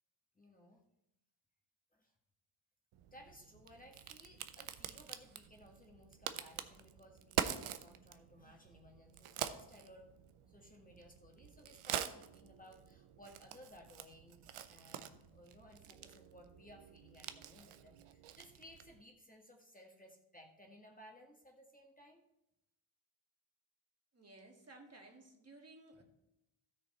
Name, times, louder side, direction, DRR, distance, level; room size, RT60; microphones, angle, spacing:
voice 1, 0.3-0.8 1.9-2.1 3.1-10.1 10.5-14.4 14.7-22.2, equal, 15° left, 0 dB, 1.6 m, -59 dB
Crack, 2.9-19.0, right 10 dB, 80° right, 0.8 m, -46 dB
voice 2, 24.1-26.0, right 2 dB, 30° right, 1 dB, 1.9 m, -57 dB
13.0 x 6.5 x 4.3 m, 0.86 s
cardioid pair, 75°, 49 cm